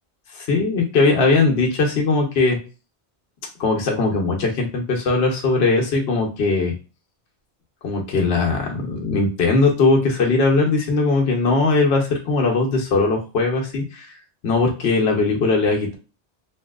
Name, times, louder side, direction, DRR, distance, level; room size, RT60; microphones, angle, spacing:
voice 1, 0.3-2.6 3.6-6.7 7.8-14.1 14.4-16.0, left 3 dB, 70° left, 0 dB, 0.9 m, -19 dB
2.8 x 2.6 x 2.3 m, 0.33 s
omnidirectional pair, 1.1 m